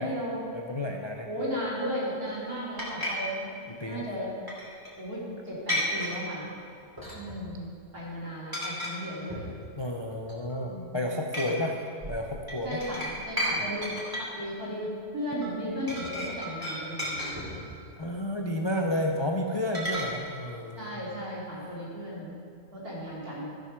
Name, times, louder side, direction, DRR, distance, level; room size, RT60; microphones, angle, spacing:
voice 1, 0.0-0.4 1.3-4.3 5.0-6.5 7.1-9.5 10.6-11.7 12.6-17.6 18.4-18.8 19.5-20.1 20.8-23.5, equal, 70° right, -7 dB, 3.7 m, -36 dB
voice 2, 0.5-1.3 3.7-4.1 9.8-11.8 12.1-12.8 13.6-13.7 18.0-21.0, left 1 dB, 40° left, 1 dB, 0.4 m, -31 dB
sound 1, 2.8-3.1 4.5-4.9 5.7-6.2 7.0-7.5 7.7-8.0 8.5-9.0 9.3-9.6 10.1-10.6 11.3-11.5 12.0-13.5 13.8-14.3 15.4-15.5 15.9-17.7 19.7-20.1, equal, 15° right, 2.7 m, -33 dB
14.0 x 6.5 x 6.1 m, 2.4 s
omnidirectional pair, 1.6 m